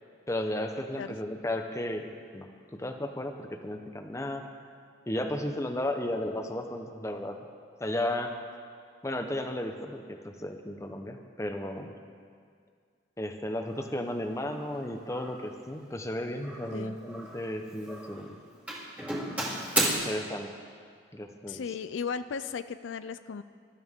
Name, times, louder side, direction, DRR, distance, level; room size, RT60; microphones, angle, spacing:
voice 1, 0.3-4.5 5.1-7.4 7.8-8.4 9.0-11.9 13.2-18.4 20.0-20.5 21.1-21.7, left 1 dB, 15° left, 5 dB, 0.9 m, -34 dB
Doorbell, 13.7-13.9 14.4-14.8 15.1-15.5 16.4-17.5 17.8-18.3 18.7-19.9, right 1 dB, 10° right, 1.9 m, -33 dB
voice 2, 21.5-23.4, left 6 dB, 85° left, 13 dB, 0.4 m, -36 dB
22.0 x 13.0 x 3.7 m, 2.1 s
head